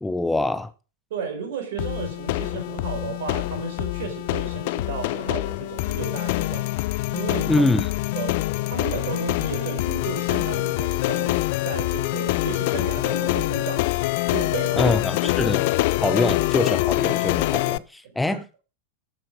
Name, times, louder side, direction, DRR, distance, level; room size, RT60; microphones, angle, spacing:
voice 1, 0.0-0.7 7.5-7.9 14.8-15.7 16.0-18.6, left 2 dB, 5° left, 0.9 m, -24 dB
voice 2, 1.1-6.7 7.1-7.7 8.1-13.9 14.3-15.0 18.0-18.4, right 6 dB, 55° right, 4.7 m, -34 dB
sound 1, 1.8-17.8, left 19 dB, 50° left, 0.5 m, -25 dB
12.0 x 9.0 x 5.0 m
figure-of-eight pair, 90°, 0 cm